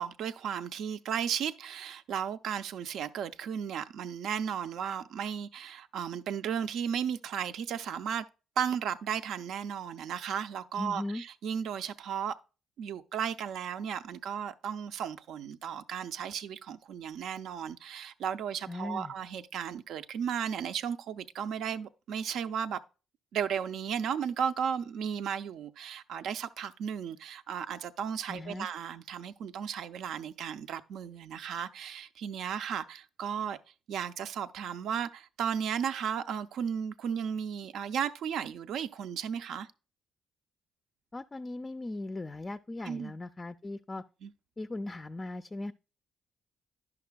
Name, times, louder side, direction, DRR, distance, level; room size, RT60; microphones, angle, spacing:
voice 1, 0.0-8.2 8.6-12.4 12.8-22.8 23.3-33.6 33.9-39.7 42.8-43.1 44.2-44.3, right 8 dB, 80° right, 0.5 m, -35 dB
voice 2, 10.8-11.2 18.7-19.1 28.3-28.7 41.1-44.0 44.6-45.7, left 2 dB, 25° left, 0.4 m, -38 dB
11.0 x 5.9 x 2.2 m
cardioid pair, 90°, 0 cm